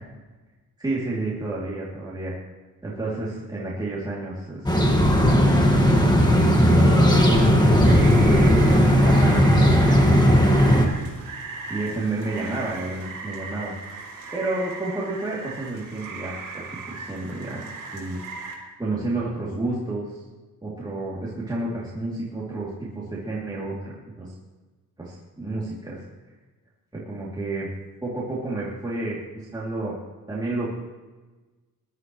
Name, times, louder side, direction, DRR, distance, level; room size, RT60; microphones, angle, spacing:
voice 1, 0.8-2.3 2.8-5.3 6.7-10.2 11.4-13.8 14.3-18.2 18.8-20.2 20.6-24.3 25.0-26.0 26.9-27.7 28.0-29.9 30.3-30.8, right 2 dB, 10° right, -7 dB, 2.8 m, -31 dB
sound 1, 4.7-10.9, equal, 10° left, 1.8 m, -16 dB
Rain, 7.9-18.5, right 4 dB, 70° right, 4.0 m, -37 dB
21.0 x 12.0 x 3.1 m, 1.2 s
cardioid pair, 135°, 33 cm